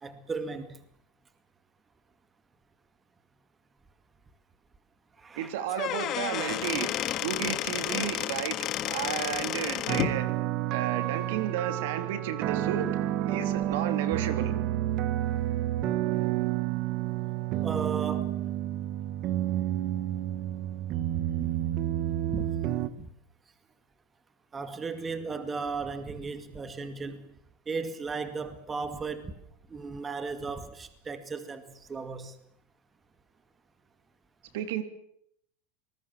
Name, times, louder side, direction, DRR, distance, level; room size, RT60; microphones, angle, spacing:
voice 1, 0.0-0.8 5.2-5.6 17.6-18.3 22.3-22.4 23.0-23.1 24.5-27.3 27.7-29.3 29.7-32.3, right 4 dB, 15° right, 10 dB, 2.2 m, -35 dB
voice 2, 5.4-6.9 7.2-8.6 8.9-10.3 10.7-12.9 13.2-14.5 34.5-34.8, right 10 dB, 70° right, 10 dB, 3.1 m, -32 dB
Squeak / Wood, 5.6-10.2, left 12 dB, 35° left, 1.7 m, -31 dB
sound 1, 9.9-22.9, right 13 dB, 45° right, 1.5 m, -30 dB
26.0 x 20.0 x 7.6 m, 0.72 s
supercardioid pair, 140°, 0 cm